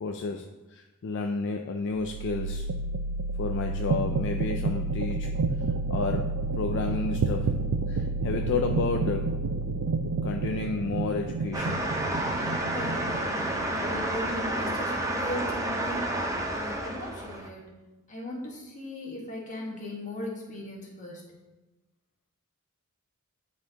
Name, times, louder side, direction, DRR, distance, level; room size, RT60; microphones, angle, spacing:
voice 1, 0.0-2.7 3.4-5.4 5.9-7.5 7.9-9.3 10.2-11.8, left 4 dB, 55° left, 4 dB, 0.4 m, -31 dB
sound 1, 2.0-13.9, right 3 dB, 75° right, 0.4 m, -30 dB
sound 2, 11.5-17.5, right 1 dB, 15° right, 0.5 m, -30 dB
voice 2, 12.4-16.2 16.5-17.7 18.1-21.2, left 1 dB, 35° left, -2 dB, 1.5 m, -38 dB
10.5 x 4.3 x 2.9 m, 1.1 s
head